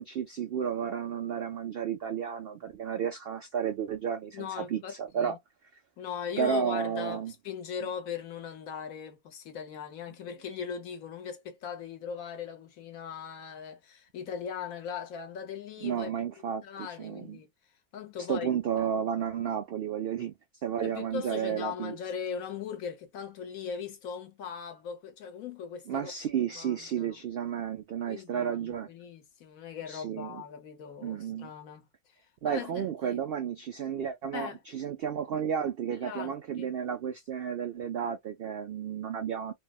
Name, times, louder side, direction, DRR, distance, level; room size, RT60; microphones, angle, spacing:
voice 1, 0.0-5.4 6.4-7.3 15.8-17.4 18.3-20.3 20.6-21.9 25.9-28.9 29.9-30.4 31.0-31.5 32.4-39.5, right 8 dB, 75° right, 0.5 m, -32 dB
voice 2, 4.3-5.4 6.0-16.1 16.6-17.5 17.9-18.5 18.8-18.9 20.8-26.1 26.6-27.2 28.1-31.9 32.4-33.2 34.3-34.6 35.9-36.7, left 7 dB, 70° left, 1.2 m, -39 dB
3.4 x 2.1 x 2.2 m
omnidirectional pair, 1.6 m